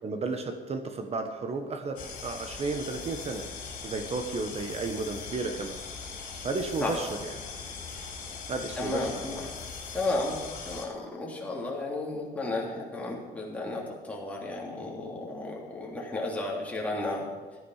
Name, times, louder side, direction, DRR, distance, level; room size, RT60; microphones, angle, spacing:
voice 1, 0.0-3.5 3.8-5.8 6.4-7.3 8.5-9.1, right 3 dB, 40° right, 6 dB, 1.2 m, -33 dB
sound 1, 2.0-10.9, left 5 dB, 55° left, 3.7 m, -40 dB
voice 2, 8.7-9.4 9.9-10.4 10.7-17.3, left 2 dB, 10° left, -4 dB, 3.3 m, -33 dB
14.5 x 11.5 x 5.0 m, 1.4 s
cardioid pair, 110°, 17 cm